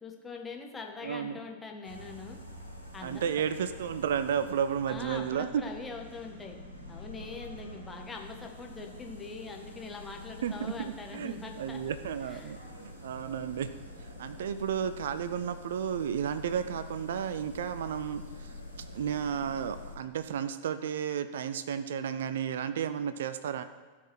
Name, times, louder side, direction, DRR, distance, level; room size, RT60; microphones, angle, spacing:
voice 1, 0.0-2.4 2.9-3.2 4.9-6.6 6.9-11.8 12.3-12.6, left 4 dB, 15° left, 2 dB, 1.7 m, -43 dB
voice 2, 1.0-1.4 3.0-5.6 10.4-13.7 14.0-23.6, right 8 dB, 60° right, 13 dB, 0.4 m, -33 dB
sound 1, 1.8-20.0, left 1 dB, 85° right, 2.0 m, -46 dB
17.0 x 5.8 x 4.5 m, 1.4 s
figure-of-eight pair, 90°, 0 cm